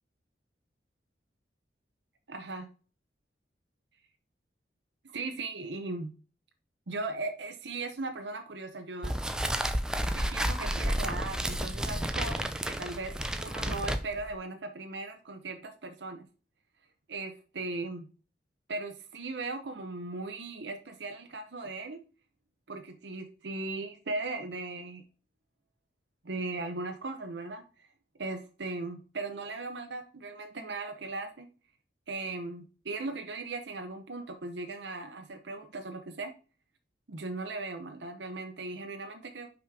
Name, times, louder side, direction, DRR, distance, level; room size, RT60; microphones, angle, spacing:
voice 1, 2.3-2.7 5.1-6.1 6.9-9.2 10.1-16.3 17.1-18.1 18.7-22.0 22.7-25.0 26.2-27.9 28.2-31.5 32.1-36.3 37.1-39.5, right 3 dB, 75° right, 5 dB, 0.8 m, -38 dB
sound 1, 9.0-14.3, equal, 5° right, 0.5 m, -31 dB
5.8 x 5.1 x 4.8 m, 0.36 s
head